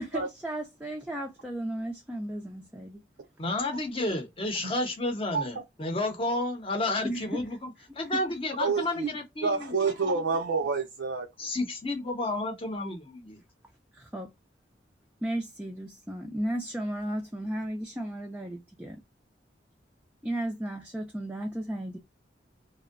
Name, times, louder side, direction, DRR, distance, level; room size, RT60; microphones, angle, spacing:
voice 1, 0.0-3.0 7.0-7.4 8.1-8.2 9.4-9.5 13.9-14.3 15.2-19.0 20.2-22.0, right 1 dB, 10° right, 0.4 m, -34 dB
voice 2, 3.4-9.7 11.4-13.4, left 2 dB, 30° left, 0.7 m, -31 dB
voice 3, 8.6-9.1 9.4-11.3, right 4 dB, 90° right, 0.5 m, -28 dB
2.6 x 2.0 x 2.4 m
head